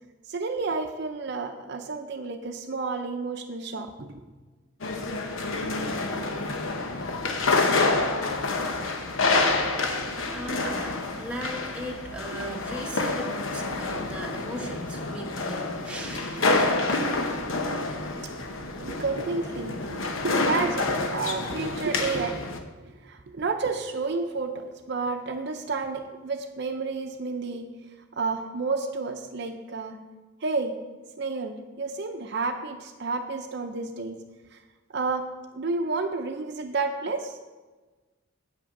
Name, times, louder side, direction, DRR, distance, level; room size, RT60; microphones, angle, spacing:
voice 1, 0.3-4.1 10.6-10.7 18.8-22.4 22.8-27.7 28.2-30.0 30.4-30.7 31.2-34.2 34.9-35.2 35.5-37.4, right 4 dB, 55° right, 5 dB, 0.6 m, -30 dB
sound 1, 4.8-22.6, left 3 dB, 75° left, 0.9 m, -28 dB
voice 2, 10.3-17.1, equal, 5° right, -1 dB, 1.0 m, -38 dB
8.7 x 6.3 x 5.9 m, 1.3 s
head